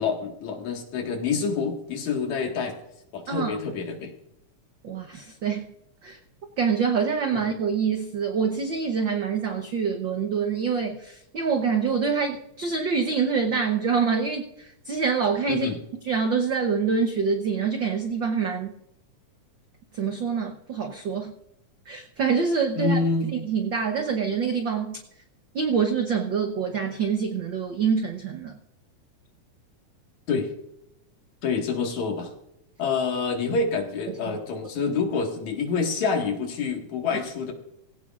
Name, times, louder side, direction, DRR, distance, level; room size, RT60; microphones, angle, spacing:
voice 1, 0.0-2.8 3.1-4.1 7.3-7.4 15.5-15.8 22.8-23.3 30.3-30.5 31.4-32.3 32.8-37.5, left 4 dB, 65° left, 2 dB, 3.1 m, -27 dB
voice 2, 3.3-3.6 4.8-5.7 6.0-6.2 6.6-15.7 16.1-18.7 19.9-21.3 21.9-23.0 23.3-25.0 25.5-28.6 34.1-34.4 37.1-37.2, right 6 dB, 80° right, 4 dB, 1.0 m, -26 dB
19.0 x 16.5 x 2.5 m, 0.81 s
omnidirectional pair, 3.6 m